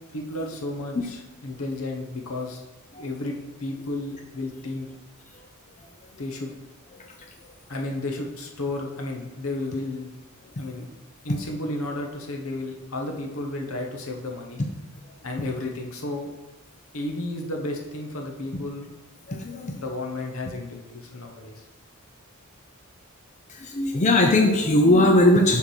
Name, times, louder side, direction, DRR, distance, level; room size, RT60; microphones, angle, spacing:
voice 1, 0.1-2.6 2.9-4.9 6.2-6.5 7.7-10.1 10.5-10.9 11.2-14.6 15.2-16.3 16.9-18.9 19.7-21.5, left 2 dB, 75° left, 1 dB, 1.2 m, -32 dB
voice 2, 19.3-19.7 23.7-25.6, left 1 dB, 35° left, 2 dB, 0.6 m, -18 dB
7.1 x 3.7 x 6.4 m, 1.0 s
head